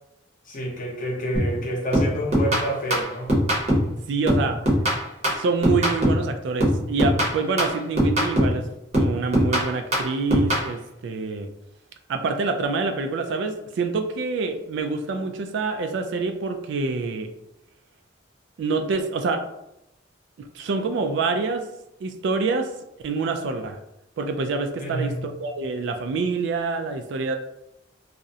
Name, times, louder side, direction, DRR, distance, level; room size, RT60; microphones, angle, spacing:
voice 1, 0.5-3.4 24.8-25.2, right 1 dB, 45° left, -2 dB, 0.7 m, -28 dB
sound 1, 1.3-1.6 1.9-4.0 4.3-6.3 6.6-8.6 8.9-10.7, equal, 35° right, 0.7 m, -22 dB
voice 2, 4.1-4.6 5.3-8.7 8.9-11.5 12.1-17.3 18.6-19.4 20.4-21.6 22.0-22.7 23.0-23.8 24.2-27.4, right 4 dB, 65° right, 6 dB, 0.3 m, -26 dB
2.4 x 2.0 x 2.6 m, 0.85 s
head